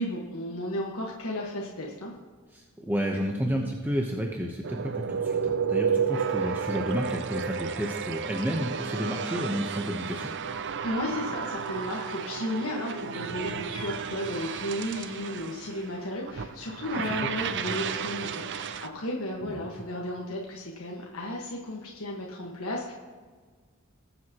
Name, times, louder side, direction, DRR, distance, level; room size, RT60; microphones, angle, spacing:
voice 1, 0.0-2.1 10.8-22.9, left 1 dB, 75° left, -2 dB, 1.4 m, -34 dB
voice 2, 2.5-10.3 16.9-17.1 19.4-19.7, equal, 10° right, 0 dB, 0.8 m, -31 dB
sound 1, 4.6-18.9, right 6 dB, 55° right, 0.5 m, -32 dB
20.0 x 7.7 x 2.9 m, 1.5 s
head